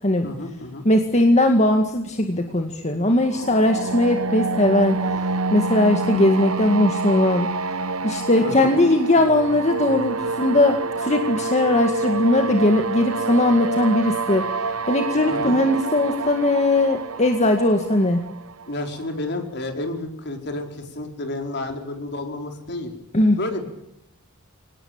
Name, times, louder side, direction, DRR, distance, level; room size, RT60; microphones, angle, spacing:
voice 1, 0.2-0.8 8.4-8.7 15.3-15.6 18.7-22.9 23.4-23.7, left 2 dB, 50° left, 4 dB, 4.5 m, -30 dB
voice 2, 0.9-5.0 5.5-7.5 8.0-14.5 14.9-18.2 23.1-23.4, left 1 dB, 30° left, 5 dB, 2.0 m, -19 dB
sound 1, 3.2-19.1, right 3 dB, 75° right, 1.1 m, -27 dB
25.0 x 19.0 x 8.9 m, 0.85 s
head